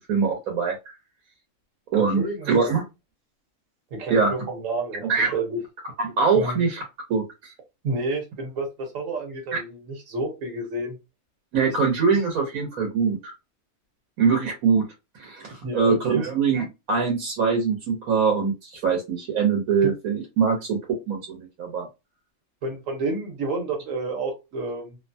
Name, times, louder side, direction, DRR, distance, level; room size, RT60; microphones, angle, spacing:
voice 1, 0.1-0.7 1.9-2.8 4.1-4.3 5.1-5.4 6.0-6.8 7.1-7.5 11.5-13.3 14.2-14.9 15.1-20.8 21.1-21.9, right 5 dB, 90° right, 0 dB, 1.3 m, -23 dB
voice 2, 1.9-2.6 3.9-5.6 6.3-6.7 7.8-11.0 11.6-11.8 15.6-16.2 19.8-19.9 22.6-25.0, right 2 dB, 70° right, 2 dB, 1.3 m, -30 dB
2.8 x 2.2 x 2.6 m, 0.24 s
omnidirectional pair, 1.4 m